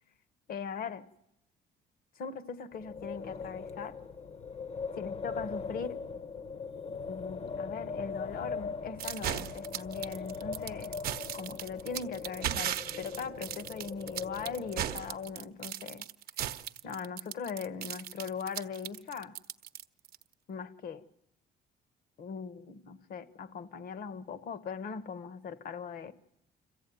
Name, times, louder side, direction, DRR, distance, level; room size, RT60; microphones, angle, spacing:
voice 1, 0.5-1.0 2.2-4.0 5.0-6.0 6.9-10.9 11.3-16.1 16.8-19.4 20.5-21.0 22.2-26.1, left 6 dB, 60° left, 1.1 m, -40 dB
Wind, 2.7-15.3, left 5 dB, 40° left, 0.8 m, -40 dB
sound 1, 9.0-20.2, right 11 dB, 65° right, 0.7 m, -37 dB
26.0 x 15.0 x 9.1 m
cardioid pair, 110°, 17 cm